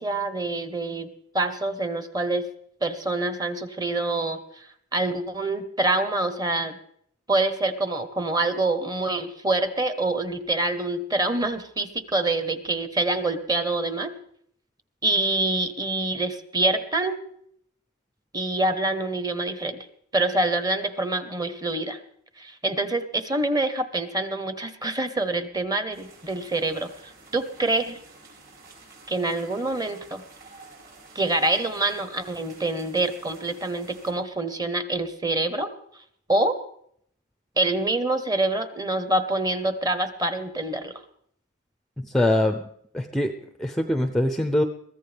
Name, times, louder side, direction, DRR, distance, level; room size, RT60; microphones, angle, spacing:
voice 1, 0.0-2.5 2.8-4.4 4.9-6.8 7.3-14.1 15.0-17.2 18.3-19.9 20.1-22.0 22.4-26.9 27.3-28.0 29.1-30.2 31.1-35.7 36.3-36.6 37.6-40.9, right 2 dB, 20° right, 10 dB, 1.1 m, -26 dB
sound 1, 25.9-34.1, right 3 dB, 50° right, 6.3 m, -50 dB
voice 2, 42.0-42.6 42.9-43.3 43.6-44.6, left 1 dB, ahead, 6 dB, 0.6 m, -23 dB
22.5 x 15.0 x 3.4 m, 0.68 s
head